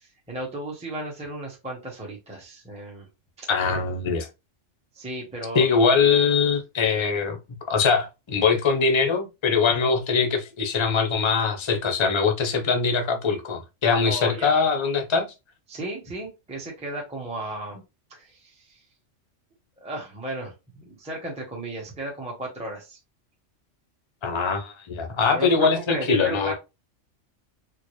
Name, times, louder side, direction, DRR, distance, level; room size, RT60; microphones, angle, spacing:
voice 1, 0.0-3.1 3.4-3.5 4.9-5.7 14.0-14.5 15.7-17.8 18.1-18.8 19.8-23.0 25.3-26.5, right 1 dB, 5° right, 0.9 m, -35 dB
voice 2, 3.5-4.3 5.5-7.4 7.7-15.3 24.2-26.5, left 5 dB, 30° left, 0.5 m, -22 dB
4.4 x 2.1 x 3.1 m
omnidirectional pair, 1.3 m